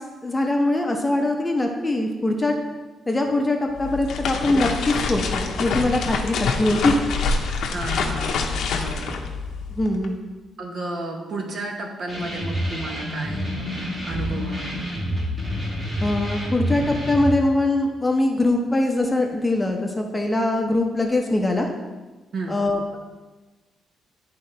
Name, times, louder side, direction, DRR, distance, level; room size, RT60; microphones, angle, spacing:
voice 1, 0.2-2.5 3.1-6.9 9.7-10.2 16.0-21.7 22.5-23.0, left 2 dB, 10° left, 2 dB, 0.7 m, -22 dB
sound 1, 3.7-10.1, left 4 dB, 75° left, 0.7 m, -26 dB
voice 2, 7.7-9.2 10.6-14.9 22.3-22.7, right 2 dB, 50° right, 2 dB, 1.1 m, -33 dB
sound 2, 12.1-17.3, equal, 15° right, 1.5 m, -28 dB
10.0 x 3.8 x 4.4 m, 1.2 s
cardioid pair, 140°, 0 cm